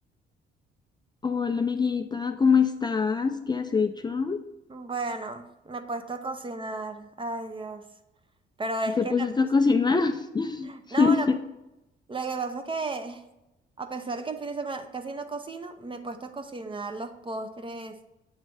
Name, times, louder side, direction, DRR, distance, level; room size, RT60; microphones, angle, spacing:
voice 1, 1.2-4.4 9.0-10.7 11.0-11.2, left 5 dB, 20° left, 6 dB, 0.4 m, -24 dB
voice 2, 4.7-7.9 8.6-9.3 10.6-11.3 12.1-13.2 13.8-18.0, right 3 dB, 25° right, 7 dB, 0.7 m, -34 dB
7.9 x 3.2 x 4.7 m, 0.93 s
cardioid pair, 90°, 20 cm